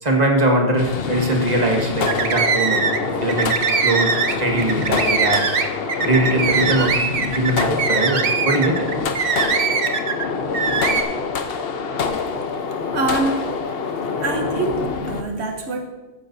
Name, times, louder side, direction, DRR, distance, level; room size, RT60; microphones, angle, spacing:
voice 1, 0.0-2.9 3.2-3.5 3.8-5.5 6.0-8.9, right 1 dB, 40° right, 0 dB, 1.7 m, -21 dB
sound 1, 0.8-15.2, left 5 dB, 65° left, 1.0 m, -26 dB
sound 2, 2.0-3.0 3.3-10.3 10.5-11.0, right 5 dB, 60° right, 0.9 m, -21 dB
voice 2, 12.9-13.4 14.2-15.8, right 3 dB, 85° right, 3 dB, 1.2 m, -24 dB
14.5 x 9.9 x 2.7 m, 1.2 s
omnidirectional pair, 1.1 m